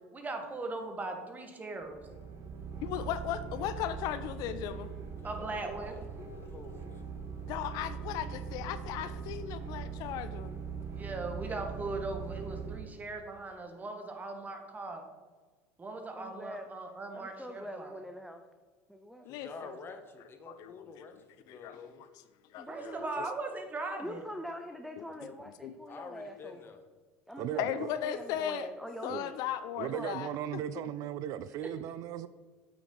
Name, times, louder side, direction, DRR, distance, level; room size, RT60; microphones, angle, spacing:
voice 1, 0.1-2.0 5.2-5.9 10.9-15.0 15.8-18.0 22.7-24.2 31.6-31.7, right 3 dB, 20° right, 4 dB, 1.5 m, -39 dB
sound 1, 1.8-12.8, right 6 dB, 35° right, 1.1 m, -41 dB
voice 2, 2.8-4.9 7.5-10.5 19.3-19.7 20.5-21.2 21.5-21.8 22.5-23.0 25.0-25.1 25.6-25.7 27.6-28.7 29.0-30.6, left 11 dB, 60° left, 12 dB, 0.5 m, -37 dB
voice 3, 5.2-7.0 19.3-22.0 25.9-26.8, left 4 dB, 30° left, 6 dB, 1.1 m, -49 dB
voice 4, 16.2-16.7 17.1-18.4 18.9-19.3 22.6-23.3 24.0-26.7 27.3-29.4 29.8-30.1, equal, ahead, 6 dB, 0.6 m, -43 dB
voice 5, 27.4-27.9 29.1-29.2 29.8-32.3, right 11 dB, 50° right, 14 dB, 0.4 m, -37 dB
8.1 x 6.1 x 3.9 m, 1.4 s
hypercardioid pair, 85°, 7 cm